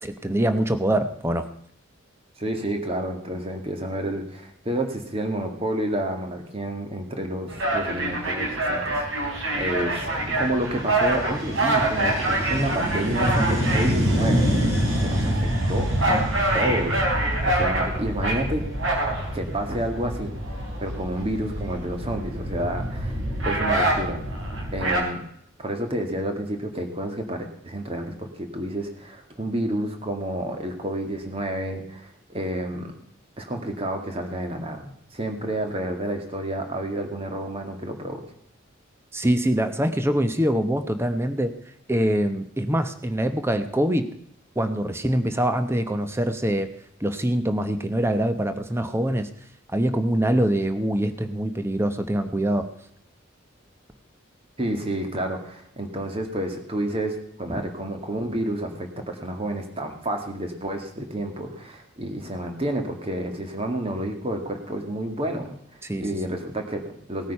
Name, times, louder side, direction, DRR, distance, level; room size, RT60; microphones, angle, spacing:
voice 1, 0.0-1.5 39.1-41.5 41.9-44.1 44.6-46.7 47.0-49.3 49.7-52.7 65.8-66.1, right 1 dB, 10° right, 9 dB, 0.9 m, -24 dB
voice 2, 2.4-10.1 10.4-16.2 16.5-18.6 19.3-24.2 24.7-25.2 25.6-32.9 33.4-38.2 54.6-67.3, right 1 dB, 30° right, 4 dB, 2.0 m, -30 dB
sound 1, 7.5-25.0, right 1 dB, 70° right, 3.7 m, -25 dB
17.5 x 9.2 x 5.5 m, 0.69 s
head